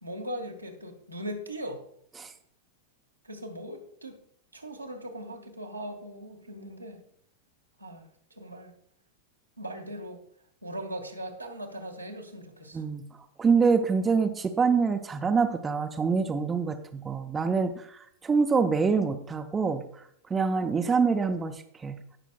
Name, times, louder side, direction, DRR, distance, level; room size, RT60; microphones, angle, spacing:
voice 1, 0.0-1.8 3.2-4.2 4.5-7.0 7.8-8.1 8.3-8.7 9.6-10.2 10.6-12.8, equal, 85° right, 1 dB, 1.5 m, -39 dB
voice 2, 12.7-13.1 13.4-19.8 20.3-22.0, right 5 dB, 15° right, 6 dB, 0.7 m, -25 dB
17.5 x 6.0 x 2.3 m, 0.67 s
figure-of-eight pair, 90°, 0 cm